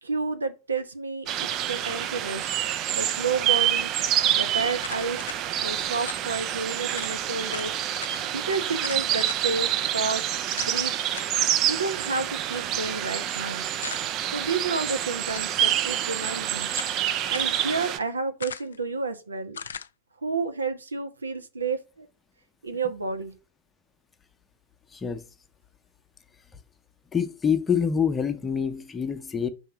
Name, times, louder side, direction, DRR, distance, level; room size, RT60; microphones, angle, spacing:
voice 1, 0.0-2.5 2.9-3.9 4.3-5.2 5.6-7.7 8.3-10.2 10.5-10.9 11.7-13.7 14.3-16.7 17.3-19.6 20.2-22.1 22.6-23.3, right 4 dB, 75° right, 0.8 m, -30 dB
sound 1, 1.3-18.0, right 11 dB, 35° right, 0.5 m, -27 dB
sound 2, 4.8-5.4 6.0-6.2 6.6-6.7 6.9-7.1 7.5-8.1 8.8-9.4 9.8-9.9 10.6-10.7 11.1-11.4 13.8-14.3 15.2-15.6 16.3-17.0 17.3-17.6 18.4-18.8 19.5-19.9, left 7 dB, 70° left, 0.3 m, -38 dB
voice 2, 24.9-25.2 27.1-29.5, left 7 dB, 15° left, 0.7 m, -26 dB
5.6 x 3.6 x 5.8 m
figure-of-eight pair, 90°, 0 cm